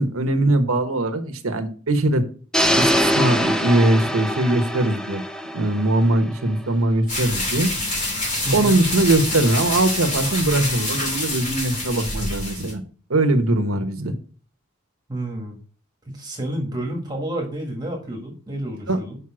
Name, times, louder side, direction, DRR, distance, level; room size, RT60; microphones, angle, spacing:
voice 1, 0.0-2.2 2.8-5.2 5.5-7.7 8.5-12.8 13.1-14.1 18.9-19.0, right 2 dB, 85° right, 7 dB, 1.1 m, -21 dB
sound 1, 2.5-6.6, equal, 5° left, 0.4 m, -23 dB
sound 2, 7.1-12.7, left 2 dB, 35° left, 2.9 m, -26 dB
voice 2, 8.4-8.8 15.1-15.6 16.1-19.2, right 1 dB, 20° right, 1 dB, 1.5 m, -29 dB
6.3 x 5.2 x 6.0 m, 0.41 s
head